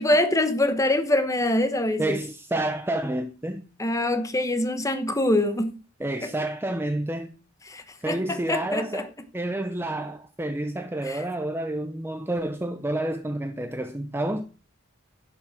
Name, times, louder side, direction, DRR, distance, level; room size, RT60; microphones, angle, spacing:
voice 1, 0.0-2.2 3.8-5.7 7.7-9.1 11.1-11.2, left 1 dB, 15° left, 1.1 m, -24 dB
voice 2, 2.0-3.7 6.0-7.3 8.0-14.5, right 1 dB, 10° right, 0.6 m, -29 dB
11.0 x 6.1 x 5.8 m
head